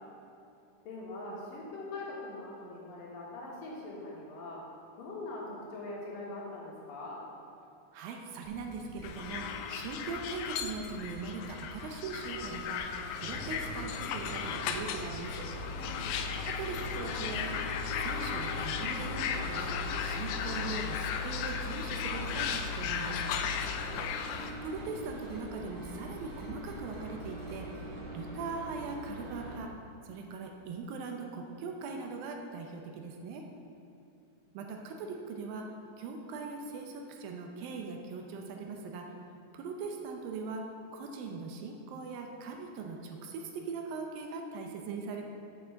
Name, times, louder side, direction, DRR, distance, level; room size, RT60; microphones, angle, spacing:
voice 1, 0.8-4.6 5.0-7.2 15.7-16.1 23.6-24.1, left 2 dB, 65° left, -4 dB, 3.0 m, -42 dB
voice 2, 7.9-12.8 13.2-15.5 16.4-17.6 18.0-23.3 24.6-29.7 30.0-33.5 34.5-39.1 39.5-40.6 40.9-45.3, right 4 dB, 75° right, 2 dB, 2.4 m, -40 dB
sound 1, 8.4-28.0, right 1 dB, 20° left, 1.2 m, -50 dB
sound 2, 9.0-24.5, left 7 dB, 80° left, 2.3 m, -36 dB
sound 3, 13.2-29.6, left 1 dB, 55° right, 2.2 m, -41 dB
7.6 x 6.9 x 7.0 m, 2.8 s
omnidirectional pair, 4.5 m